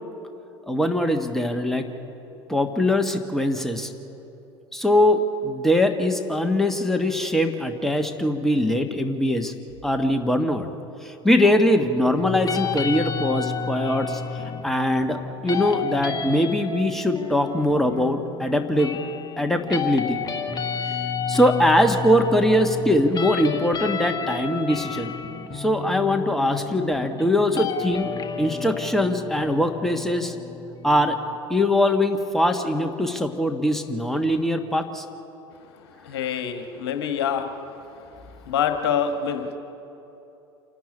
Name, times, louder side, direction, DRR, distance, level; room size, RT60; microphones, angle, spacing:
voice 1, 0.7-1.9 2.5-3.9 4.7-9.5 9.8-10.7 11.0-15.2 15.4-19.0 19.4-20.2 20.8-20.9 21.3-25.1 25.5-28.1 28.4-30.3 30.8-31.2 31.5-35.0, left 1 dB, ahead, 5 dB, 1.4 m, -22 dB
sound 1, 11.4-31.4, left 5 dB, 25° left, 1.6 m, -32 dB
voice 2, 36.0-37.5 38.5-39.6, left 8 dB, 60° left, 7 dB, 1.5 m, -25 dB
27.0 x 12.5 x 8.6 m, 3.0 s
figure-of-eight pair, 70°, 15 cm